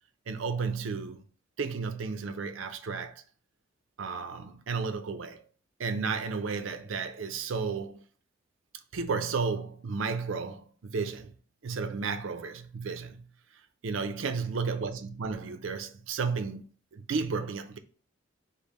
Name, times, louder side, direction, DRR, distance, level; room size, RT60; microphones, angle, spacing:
voice 1, 0.3-1.2 1.6-3.1 4.0-5.4 5.8-8.0 8.9-11.3 11.6-13.2 13.8-16.6 16.9-17.8, right 5 dB, 75° right, 0.5 m, -33 dB
5.2 x 2.1 x 4.2 m
head